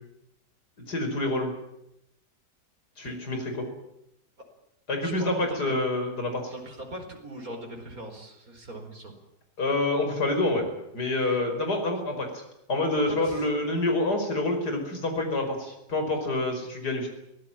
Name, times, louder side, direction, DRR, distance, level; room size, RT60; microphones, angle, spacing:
voice 1, 0.9-1.5 3.0-3.6 4.9-6.5 9.6-10.7 10.9-17.1, left 2 dB, 70° left, 4 dB, 5.9 m, -27 dB
voice 2, 5.0-5.7 6.5-9.1 12.9-13.5, right 1 dB, 55° right, 4 dB, 5.2 m, -40 dB
23.5 x 18.0 x 8.9 m, 0.83 s
omnidirectional pair, 1.8 m